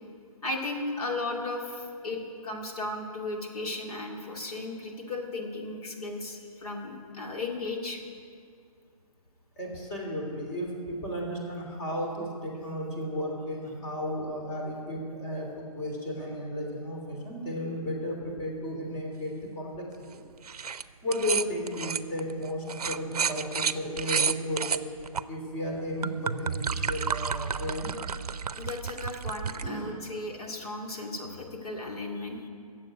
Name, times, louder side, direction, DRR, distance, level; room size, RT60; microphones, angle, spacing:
voice 1, 0.4-8.0 28.6-32.5, left 2 dB, 75° left, 1 dB, 2.3 m, -35 dB
voice 2, 9.6-20.2 21.0-24.9 25.3-27.9 29.6-29.9, equal, 30° left, 0 dB, 3.1 m, -34 dB
sound 1, 20.4-20.8 21.1-25.2 25.8-29.7, right 6 dB, 90° right, 0.5 m, -31 dB
12.0 x 7.5 x 9.2 m, 2.3 s
hypercardioid pair, 145°, 19 cm